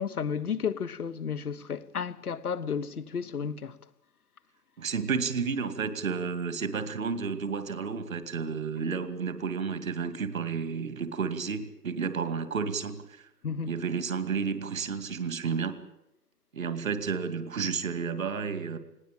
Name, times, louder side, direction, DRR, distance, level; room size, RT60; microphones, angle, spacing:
voice 1, 0.0-3.8 13.4-13.7, left 6 dB, 65° left, 1.3 m, -32 dB
voice 2, 4.8-13.0 13.7-15.8 16.5-18.8, right 5 dB, 55° right, 2.6 m, -31 dB
20.0 x 18.0 x 8.9 m
figure-of-eight pair, 130°, 47 cm